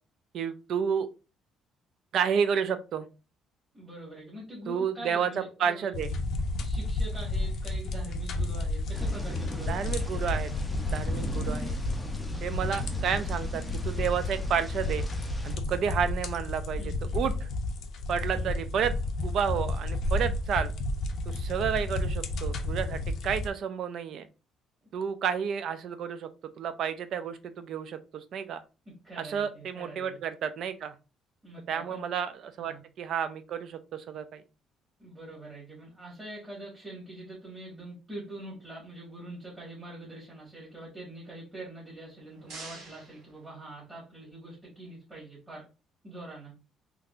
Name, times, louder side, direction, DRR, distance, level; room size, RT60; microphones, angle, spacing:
voice 1, 0.3-1.1 2.1-3.1 4.7-6.1 9.7-10.5 10.9-11.8 12.4-15.0 15.4-16.8 17.1-17.5 18.1-18.9 19.2-20.7 21.3-24.3 24.9-26.3 26.6-28.6 29.2-30.9 31.7-34.4, right 7 dB, 50° right, 11 dB, 0.4 m, -31 dB
voice 2, 3.7-5.9 6.6-10.2 12.9-13.2 16.8-17.2 18.4-18.5 28.8-30.2 31.4-32.0 32.6-32.8 35.0-45.7 46.0-46.5, right 1 dB, 15° right, -7 dB, 1.6 m, -44 dB
sound 1, 5.9-23.5, left 2 dB, 50° left, 0.5 m, -31 dB
Thunder / Rain, 8.9-15.5, equal, ahead, 0.5 m, -42 dB
sound 2, 42.0-44.2, right 3 dB, 75° right, 1.6 m, -48 dB
3.8 x 2.8 x 2.4 m, 0.30 s
cardioid pair, 170°, 0 cm